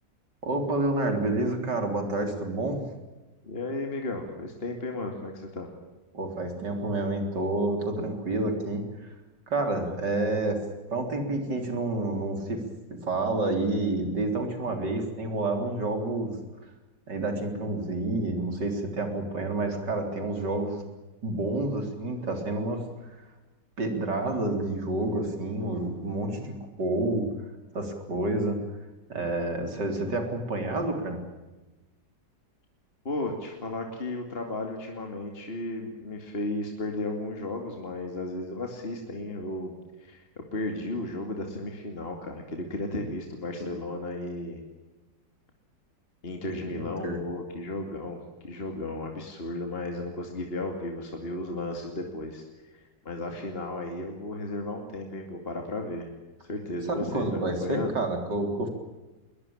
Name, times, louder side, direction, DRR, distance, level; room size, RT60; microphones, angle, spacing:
voice 1, 0.4-2.8 6.1-9.1 9.5-10.6 10.9-12.6 12.9-16.4 17.1-20.8 21.2-22.8 23.2-23.3 23.8-27.3 27.7-28.6 29.1-31.2 46.5-47.2 56.9-58.7, right 2 dB, 70° right, 5 dB, 4.3 m, -29 dB
voice 2, 3.4-5.7 33.0-39.7 40.0-44.6 46.2-52.4 52.7-56.1 56.5-57.3 57.6-57.9, left 2 dB, 30° left, 3 dB, 2.7 m, -34 dB
21.5 x 21.5 x 8.7 m, 1.1 s
omnidirectional pair, 1.9 m